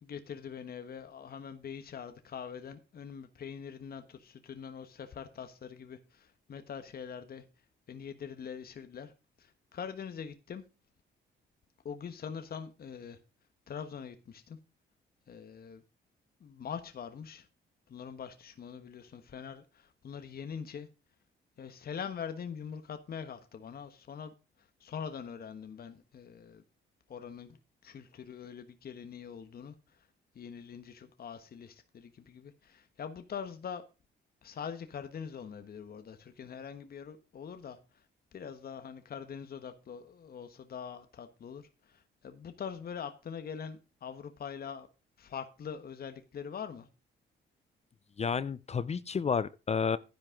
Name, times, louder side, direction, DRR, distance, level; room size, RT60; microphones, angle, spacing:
voice 1, 0.0-7.4 7.9-9.1 9.4-10.6 11.8-13.2 13.7-14.6 15.3-15.8 16.4-17.5 17.9-20.9 21.6-26.6 27.1-30.1 30.3-33.8 34.4-38.0 38.3-44.9 45.2-46.9, left 7 dB, 50° left, 1.3 m, -43 dB
voice 2, 48.2-50.0, left 6 dB, 35° left, 0.6 m, -31 dB
10.5 x 10.5 x 3.7 m
cardioid pair, 90°, 20 cm